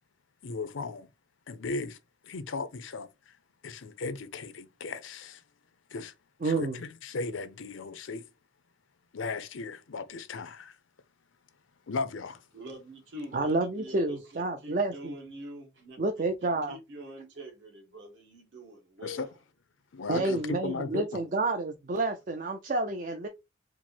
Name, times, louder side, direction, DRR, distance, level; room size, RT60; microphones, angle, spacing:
voice 1, 0.4-1.1 1.5-2.0 2.2-3.4 3.6-5.4 5.9-6.1 6.4-8.2 9.1-10.8 11.9-12.4 19.0-19.3 19.9-21.2, left 4 dB, 75° left, 0.6 m, -36 dB
voice 2, 6.4-6.8 13.3-15.1 16.0-16.8 20.1-23.3, right 2 dB, 40° right, 0.4 m, -29 dB
voice 3, 12.5-16.0 16.4-19.4 20.1-20.8, right 1 dB, 65° right, 1.8 m, -44 dB
4.4 x 2.0 x 4.3 m
head